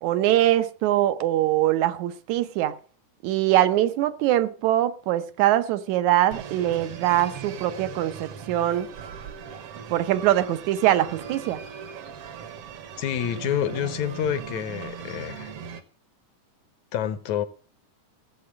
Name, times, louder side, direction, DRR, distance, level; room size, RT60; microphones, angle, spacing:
voice 1, 0.0-2.8 3.2-8.9 9.9-11.6, right 13 dB, 75° right, 2.1 m, -23 dB
sound 1, 6.3-15.8, right 7 dB, 60° right, 1.8 m, -39 dB
voice 2, 13.0-15.5 16.9-17.5, left 10 dB, 75° left, 2.1 m, -28 dB
15.5 x 7.7 x 6.2 m
omnidirectional pair, 3.5 m